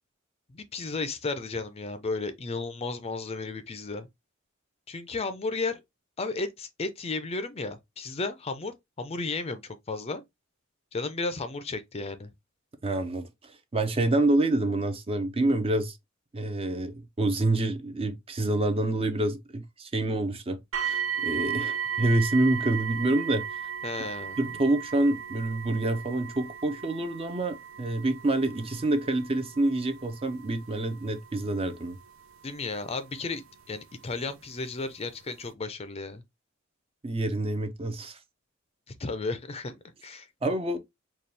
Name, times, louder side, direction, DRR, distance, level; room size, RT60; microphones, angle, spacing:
voice 1, 0.5-4.1 4.9-5.8 6.2-10.2 10.9-12.3 23.8-24.4 32.4-36.2 38.9-40.3, left 3 dB, 30° left, 0.5 m, -34 dB
voice 2, 12.8-16.0 16.3-23.6 24.4-32.0 37.0-38.2 40.4-40.8, right 2 dB, 30° right, 0.5 m, -27 dB
sound 1, 20.7-33.6 34.4-34.5 35.1-35.2, right 8 dB, 80° right, 0.7 m, -36 dB
4.2 x 2.3 x 3.2 m
head